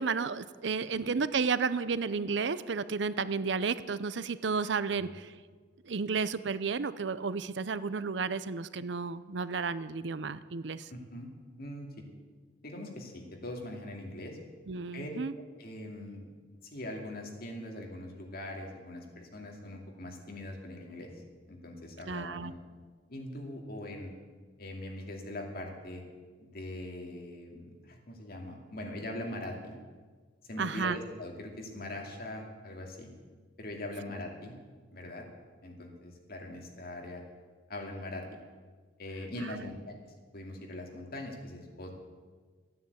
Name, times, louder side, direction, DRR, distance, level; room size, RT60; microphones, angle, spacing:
voice 1, 0.0-5.3 5.8-10.9 14.7-15.3 22.1-22.5 30.6-31.0 39.5-39.6, right 5 dB, 65° right, 15 dB, 0.6 m, -32 dB
voice 2, 10.9-11.3 11.6-12.0 12.6-14.4 14.9-16.3 16.7-21.1 21.5-22.6 23.1-24.1 24.6-26.0 26.4-29.8 30.5-33.1 33.6-34.6 34.9-35.3 35.6-37.2 37.7-38.2 39.0-41.9, left 1 dB, 50° left, 1 dB, 2.6 m, -42 dB
13.5 x 9.4 x 8.4 m, 1.5 s
head